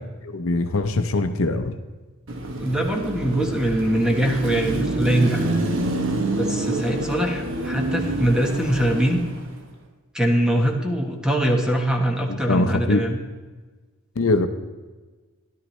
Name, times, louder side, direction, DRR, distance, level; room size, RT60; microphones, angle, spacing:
voice 1, 0.3-1.8 12.3-13.0 14.2-14.5, left 2 dB, 70° left, 8 dB, 0.6 m, -22 dB
Car passing by / Traffic noise roadway noise / Engine, 2.3-9.6, right 2 dB, 60° right, 1.1 m, -27 dB
voice 2, 2.5-5.4 6.3-9.2 10.1-13.2, right 1 dB, 5° right, 2 dB, 1.2 m, -22 dB
13.0 x 11.5 x 3.2 m, 1.3 s
head